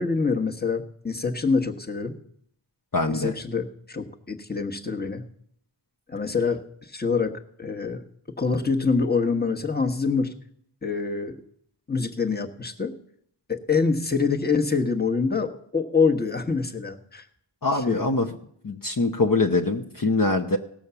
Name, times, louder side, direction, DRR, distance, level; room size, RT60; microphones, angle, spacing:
voice 1, 0.0-2.1 3.1-5.3 6.1-7.3 7.6-8.0 8.4-10.3 10.8-11.4 11.9-12.9 13.5-17.2 17.9-18.1, left 4 dB, 20° left, 3 dB, 1.3 m, -25 dB
voice 2, 2.9-3.3 17.6-18.3 18.6-20.6, left 3 dB, 50° left, 3 dB, 1.0 m, -23 dB
17.5 x 6.4 x 7.0 m, 0.68 s
wide cardioid pair, 50°, 44 cm